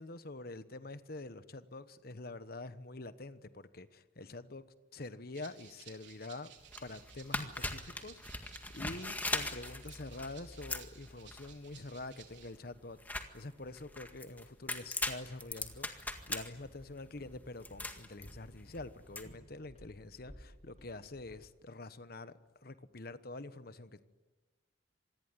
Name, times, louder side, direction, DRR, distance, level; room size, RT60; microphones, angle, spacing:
voice 1, 0.0-4.6 4.9-6.5 6.8-24.0, left 2 dB, 55° left, 1.2 m, -46 dB
Rattle (instrument), 5.3-12.5, right 9 dB, 65° right, 4.3 m, -58 dB
sound 1, 6.6-19.2, left 2 dB, 10° left, 1.9 m, -41 dB
Walk footsteps, 15.3-21.5, equal, 35° left, 3.7 m, -58 dB
26.5 x 20.5 x 9.7 m
head